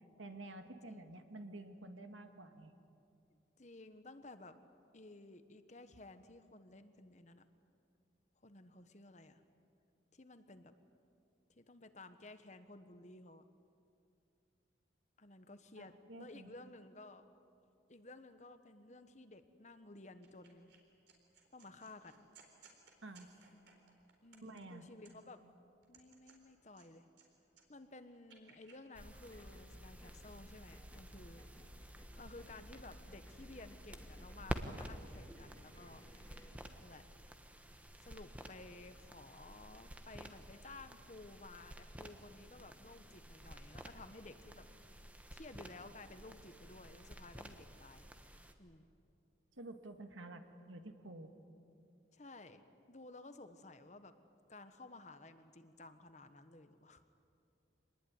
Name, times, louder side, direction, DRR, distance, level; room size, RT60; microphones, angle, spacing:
voice 1, 0.2-2.7 15.8-16.6 23.0-23.3 24.4-24.8 49.6-51.3, right 2 dB, 85° right, 7 dB, 1.9 m, -50 dB
voice 2, 3.6-4.6 4.9-7.4 8.4-9.4 10.1-10.7 11.6-13.4 15.2-17.3 17.9-20.7 21.5-22.3 24.2-25.4 25.9-27.0 27.7-31.4 32.2-36.0 36.8-37.0 38.0-44.7 45.3-48.1 48.6-48.9 52.1-52.6 52.9-54.1 54.5-57.0, left 2 dB, 35° left, 10 dB, 1.2 m, -55 dB
sound 1, 20.2-20.8 21.1-25.4 25.8-27.3 27.5-28.8, right 5 dB, 65° right, 4.2 m, -64 dB
sound 2, 28.9-48.5, equal, 5° right, 1.2 m, -51 dB
sound 3, 29.3-36.6, equal, 15° left, 2.2 m, -64 dB
25.5 x 20.0 x 9.6 m, 2.6 s
head